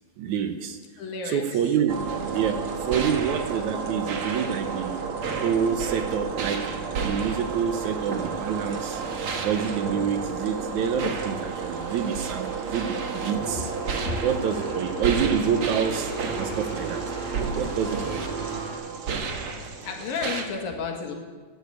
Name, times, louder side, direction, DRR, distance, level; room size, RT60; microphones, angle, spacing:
voice 1, 0.2-0.8 1.3-5.0 5.4-6.7 7.0-9.0 9.4-13.7 14.2-17.0 17.3-18.3, right 7 dB, 75° right, 8 dB, 1.8 m, -27 dB
voice 2, 1.0-1.4 14.1-14.2 19.8-21.1, left 5 dB, 75° left, 2 dB, 3.6 m, -31 dB
sound 1, 1.9-20.5, right 5 dB, 55° right, 1.6 m, -31 dB
sound 2, 7.3-18.7, right 2 dB, 30° right, 6.9 m, -41 dB
15.0 x 11.5 x 8.3 m, 1.5 s
omnidirectional pair, 4.2 m